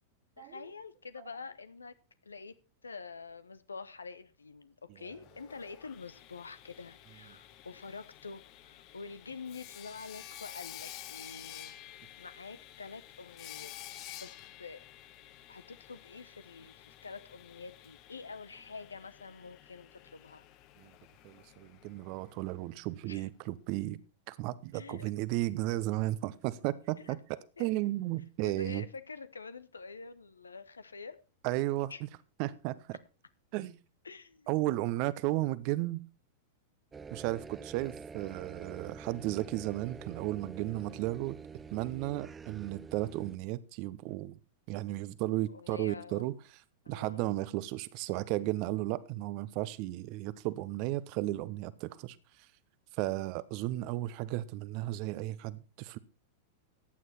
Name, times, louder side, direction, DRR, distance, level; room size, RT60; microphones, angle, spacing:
voice 1, 0.4-1.9 2.2-2.6 2.8-11.8 12.2-13.8 14.1-14.8 15.5-20.4 23.1-23.3 24.7-25.1 27.0-27.2 27.6-27.7 28.4-31.2 31.9-32.0 34.0-34.5 45.5-46.2 46.8-47.3 53.0-53.2, left 4 dB, 80° left, 0.9 m, -47 dB
Sawing, 5.1-22.9, left 13 dB, 40° left, 1.0 m, -51 dB
voice 2, 21.2-24.0 24.3-27.2 27.6-28.8 31.4-32.1 32.4-33.0 33.5-33.8 34.5-36.1 37.1-41.4 41.7-44.4 44.7-46.3 46.9-52.2 53.0-56.0, right 17 dB, 45° right, 0.8 m, -34 dB
sound 1, 36.9-43.4, right 5 dB, 15° right, 0.6 m, -47 dB
14.5 x 9.3 x 4.3 m
figure-of-eight pair, 95°, 0 cm